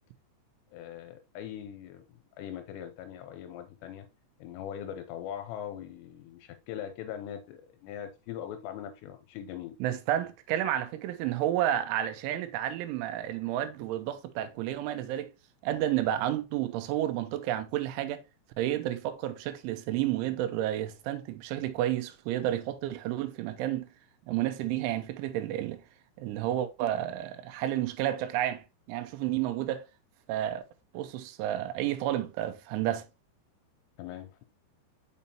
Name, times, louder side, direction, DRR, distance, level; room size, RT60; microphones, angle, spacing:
voice 1, 0.7-4.1 4.4-9.8 34.0-34.4, left 10 dB, 80° left, 2.6 m, -41 dB
voice 2, 9.8-15.3 15.6-18.2 18.6-23.9 24.3-25.8 26.2-29.9 30.3-30.6 30.9-33.1, right 12 dB, 85° right, 3.1 m, -31 dB
6.9 x 5.3 x 2.8 m
omnidirectional pair, 5.4 m